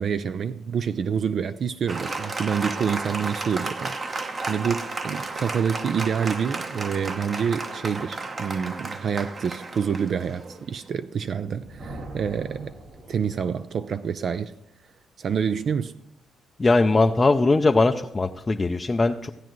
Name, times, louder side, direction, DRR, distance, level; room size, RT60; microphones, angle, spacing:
voice 1, 0.0-12.8 13.1-14.5 15.2-15.9, right 7 dB, 55° right, 0.4 m, -27 dB
Applause, 1.9-10.9, right 3 dB, 35° right, 0.9 m, -33 dB
Thunder, 11.3-13.8, right 2 dB, 70° right, 2.2 m, -42 dB
voice 2, 16.6-19.3, left 3 dB, 25° left, 0.5 m, -20 dB
16.0 x 9.0 x 3.1 m
cardioid pair, 90°, 0 cm